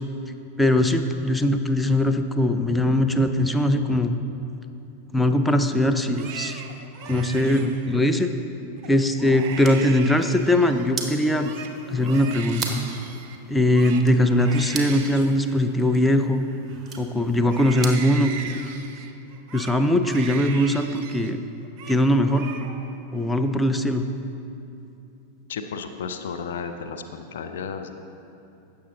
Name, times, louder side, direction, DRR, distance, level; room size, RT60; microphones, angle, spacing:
voice 1, 0.6-4.2 5.1-6.6 7.1-8.3 8.9-11.5 11.9-12.9 13.5-16.4 17.0-18.6 19.5-21.4 21.9-22.5 23.1-24.1, left 1 dB, 5° left, 7 dB, 0.5 m, -21 dB
Crying sobbing, 6.0-8.3 8.8-8.9 9.2-10.9 11.2-17.0 17.4-21.3 21.6-22.0 22.3-23.0 23.3-24.0, right 6 dB, 45° right, 0.8 m, -39 dB
sound 1, 9.3-18.2, right 3 dB, 15° right, 1.4 m, -39 dB
voice 2, 25.5-27.9, left 6 dB, 60° left, 6 dB, 0.6 m, -33 dB
15.5 x 6.8 x 3.9 m, 2.8 s
figure-of-eight pair, 90°, 0 cm